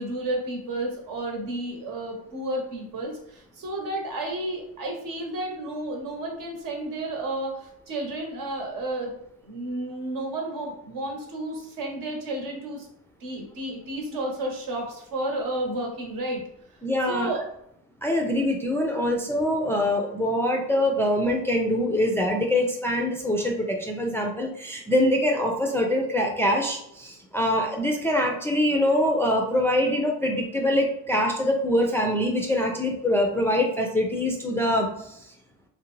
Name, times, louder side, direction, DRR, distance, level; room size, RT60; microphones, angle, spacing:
voice 1, 0.0-9.1 9.4-12.9 13.2-16.4 17.1-17.4, right 1 dB, 70° right, 1 dB, 0.9 m, -32 dB
voice 2, 16.8-17.3 18.0-35.2, left 1 dB, 10° left, 0 dB, 0.3 m, -24 dB
2.4 x 2.1 x 3.1 m, 0.74 s
cardioid pair, 105°, 34 cm